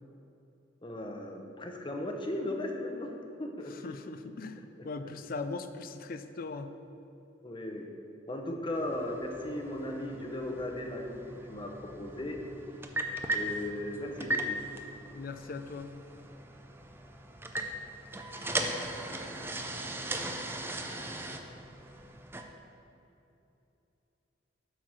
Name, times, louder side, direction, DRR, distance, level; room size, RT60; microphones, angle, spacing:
voice 1, 0.8-3.1 3.4-3.7 4.8-5.1 7.4-7.9 8.3-11.2 11.5-12.4 13.3-14.6, left 1 dB, 25° left, 3 dB, 0.8 m, -37 dB
voice 2, 3.7-6.7 15.1-15.9 17.6-17.7, left 3 dB, 50° left, 10 dB, 0.4 m, -40 dB
sound 1, 8.7-22.4, right 1 dB, 10° right, 0.4 m, -38 dB
8.2 x 4.6 x 6.1 m, 2.9 s
head